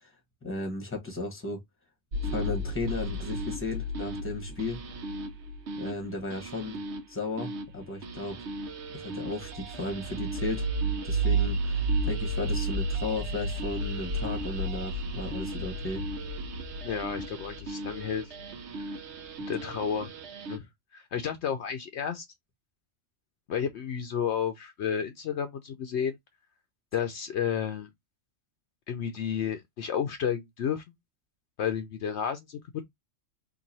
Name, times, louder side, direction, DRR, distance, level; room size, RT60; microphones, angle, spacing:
voice 1, 0.4-1.6 2.2-4.8 5.8-6.8 7.1-8.4 8.9-10.7 11.0-16.0, left 2 dB, 10° left, 1.0 m, -35 dB
sound 1, 2.1-20.6, right 2 dB, 65° right, 1.0 m, -33 dB
voice 2, 16.8-18.3 18.8-19.0 19.5-20.1 20.5-20.7 20.9-22.2 23.5-26.2 26.9-27.9 28.9-30.8 31.6-32.6, left 8 dB, 70° left, 0.8 m, -31 dB
3.0 x 2.6 x 3.9 m
omnidirectional pair, 1.3 m